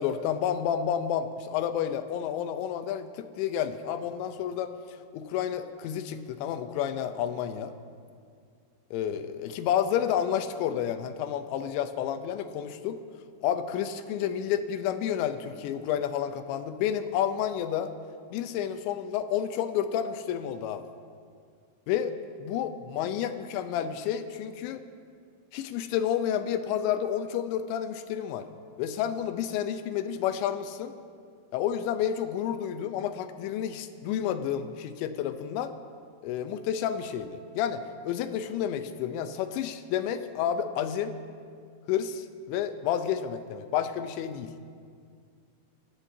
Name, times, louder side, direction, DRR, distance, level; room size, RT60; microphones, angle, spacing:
voice 1, 0.0-4.7 5.1-7.7 8.9-13.0 13.4-17.9 18.3-20.8 21.9-22.1 22.4-24.8 25.5-28.5 28.8-30.9 31.5-35.8 36.2-41.2 41.9-44.5, left 9 dB, 85° left, 9 dB, 3.0 m, -30 dB
25.5 x 14.0 x 2.8 m, 2.2 s
omnidirectional pair, 5.2 m